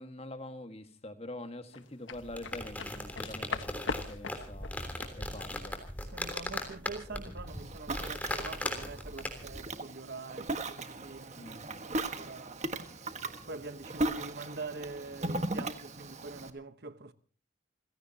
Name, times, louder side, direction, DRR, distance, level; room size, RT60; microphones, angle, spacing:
voice 1, 0.0-5.8 11.4-11.8, left 1 dB, 30° left, 1.6 m, -45 dB
sound 1, 1.7-7.0 7.3-7.5, left 4 dB, 75° left, 1.4 m, -40 dB
sound 2, 2.1-9.6, left 1 dB, 10° left, 3.4 m, -39 dB
voice 2, 6.1-12.6 13.4-17.1, right 3 dB, 55° right, 1.1 m, -44 dB
Ocean, 7.5-16.5, right 2 dB, 35° right, 1.5 m, -38 dB
30.0 x 16.5 x 2.9 m
head